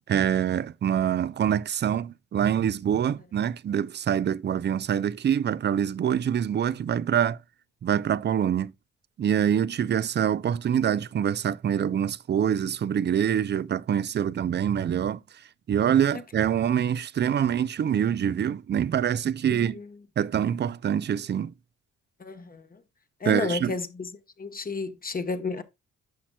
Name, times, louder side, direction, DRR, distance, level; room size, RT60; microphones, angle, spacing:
voice 1, 0.1-7.4 7.8-8.7 9.2-15.2 15.7-19.8 20.2-21.5 23.2-23.8, right 9 dB, 35° right, 0.5 m, -25 dB
voice 2, 22.2-22.6 23.2-24.1 24.4-25.6, left 4 dB, 30° left, 1.1 m, -31 dB
10.5 x 5.9 x 2.2 m
cardioid pair, 90°, 30 cm